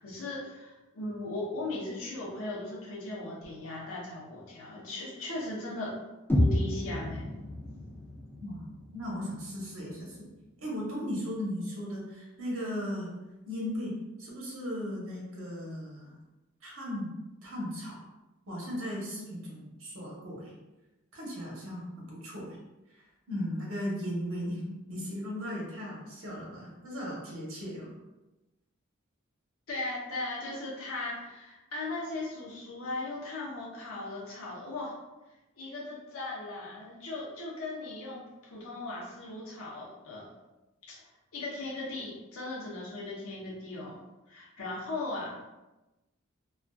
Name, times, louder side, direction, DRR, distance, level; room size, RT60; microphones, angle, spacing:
voice 1, 0.0-6.0 6.3-7.3 29.7-35.0 35.6-40.3 40.8-41.0 41.3-45.5, left 2 dB, 80° left, -5 dB, 0.6 m, -38 dB
sound 1, 6.3-10.3, left 1 dB, 10° left, 0.5 m, -31 dB
voice 2, 8.4-10.2 10.6-13.1 13.5-16.2 16.6-17.1 17.4-18.0 18.5-20.5 21.1-22.6 22.9-27.9, equal, 80° right, -4 dB, 0.8 m, -37 dB
2.5 x 2.3 x 2.2 m, 1.0 s
head